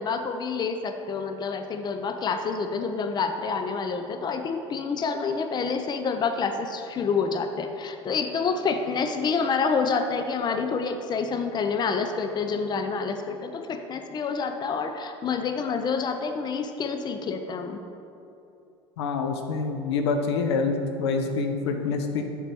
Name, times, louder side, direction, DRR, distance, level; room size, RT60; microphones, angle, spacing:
voice 1, 0.0-17.8, left 5 dB, 30° left, 7 dB, 0.6 m, -28 dB
voice 2, 19.0-22.2, left 4 dB, 75° left, 5 dB, 0.6 m, -26 dB
6.7 x 4.5 x 6.1 m, 2.7 s
hypercardioid pair, 70°, 14 cm